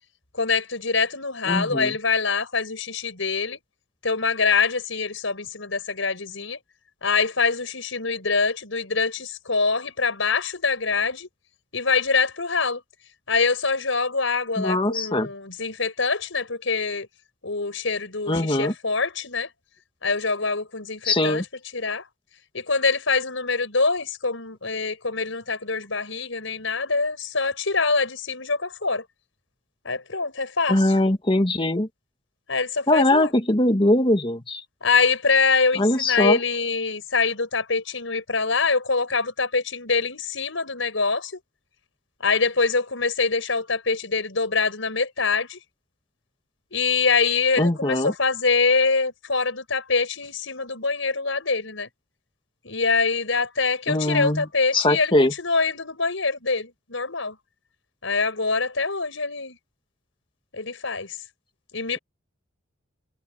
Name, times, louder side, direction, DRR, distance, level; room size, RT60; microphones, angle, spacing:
voice 1, 0.3-3.6 4.0-6.6 7.0-11.3 11.7-12.8 13.3-17.1 17.4-19.5 20.0-21.5 21.7-22.0 22.5-29.0 29.8-30.9 32.5-33.3 34.8-41.4 42.2-45.6 46.7-51.9 52.6-57.4 58.0-59.6 60.5-61.2 61.7-62.0, left 4 dB, 75° left, 5.5 m, -24 dB
voice 2, 1.5-1.9 14.6-15.3 18.3-18.7 21.0-21.4 30.7-31.9 32.9-34.6 35.8-36.4 47.6-48.1 53.9-54.5 54.7-55.3, left 1 dB, 25° left, 1.7 m, -21 dB
head